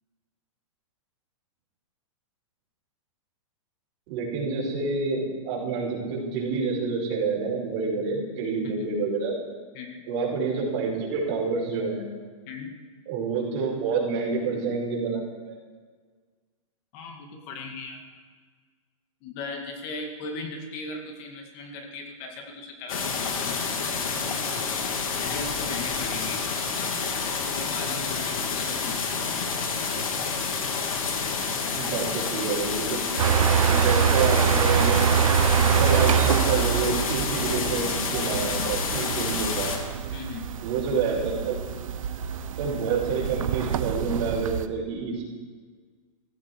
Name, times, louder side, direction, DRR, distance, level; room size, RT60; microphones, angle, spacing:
voice 1, 4.1-9.3 10.1-12.0 13.1-15.6 31.8-33.0 33.7-35.0 35.6-39.7 40.6-41.7 42.6-45.2, right 4 dB, 45° right, -4 dB, 6.2 m, -28 dB
voice 2, 16.9-18.0 19.2-23.7 25.2-26.5 26.8-29.1 31.4-31.5 40.1-40.5, left 3 dB, 40° left, 3 dB, 2.2 m, -38 dB
sound 1, 22.9-39.8, left 5 dB, 80° left, 2.7 m, -29 dB
sound 2, 33.2-44.7, right 8 dB, 70° right, 1.1 m, -25 dB
17.5 x 15.0 x 4.9 m, 1.5 s
hypercardioid pair, 145°, 18 cm